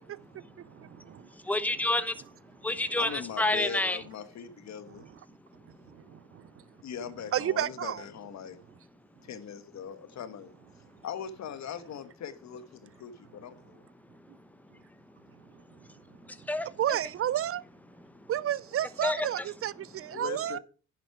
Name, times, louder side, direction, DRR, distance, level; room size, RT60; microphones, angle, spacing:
voice 1, 1.4-2.1 2.6-4.0 16.3-16.7 19.0-19.3, left 2 dB, 5° left, 1.0 m, -28 dB
voice 2, 3.0-5.1 6.8-8.6 9.2-10.5 11.0-13.8 20.1-20.6, left 8 dB, 65° left, 1.3 m, -40 dB
voice 3, 7.3-8.0 16.8-17.6 18.3-20.6, right 11 dB, 50° right, 0.4 m, -30 dB
10.5 x 7.5 x 4.7 m
cardioid pair, 90°, 30 cm